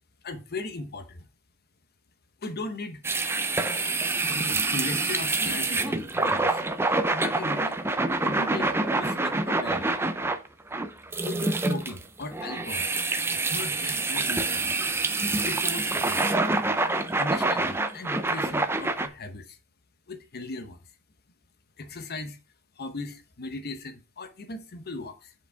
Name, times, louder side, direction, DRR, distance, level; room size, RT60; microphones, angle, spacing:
voice 1, 0.2-1.3 2.4-3.0 3.8-4.0 4.3-6.6 7.1-7.7 8.2-9.9 11.2-12.9 13.3-14.8 15.4-16.2 17.2-19.6 20.1-20.8 21.8-22.4 22.8-25.3, left 2 dB, 50° left, 0.9 m, -38 dB
sound 1, 3.0-19.1, right 3 dB, 10° right, 0.5 m, -26 dB
6.9 x 5.0 x 3.4 m
head